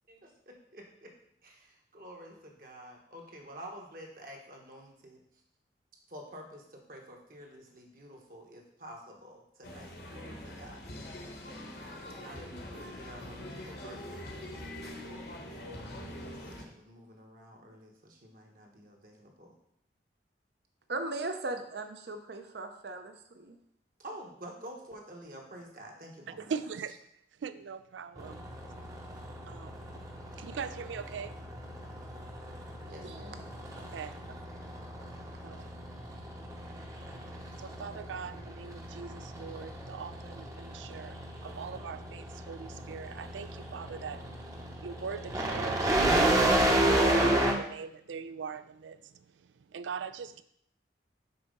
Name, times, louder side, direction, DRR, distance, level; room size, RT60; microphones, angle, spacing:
voice 1, 0.1-1.1 1.4-5.2 6.1-10.9 12.2-14.2 16.3-19.5 24.0-26.6 32.9-33.5, equal, 50° right, 1 dB, 1.2 m, -49 dB
sound 1, 9.6-16.7, left 1 dB, 60° left, 1.1 m, -43 dB
voice 2, 20.9-23.6 33.0-33.4, right 2 dB, 65° right, 6 dB, 0.7 m, -38 dB
voice 3, 26.5-27.0 27.4-28.4 29.5-29.7 30.4-31.3 33.9-34.1 35.4-35.6 37.6-41.1 41.4-44.2 44.8-46.0 46.2-49.0 49.7-50.4, right 6 dB, 90° right, 13 dB, 0.4 m, -41 dB
sound 2, 28.2-47.5, right 1 dB, 20° right, 0.7 m, -32 dB
5.8 x 4.0 x 5.3 m, 0.70 s
head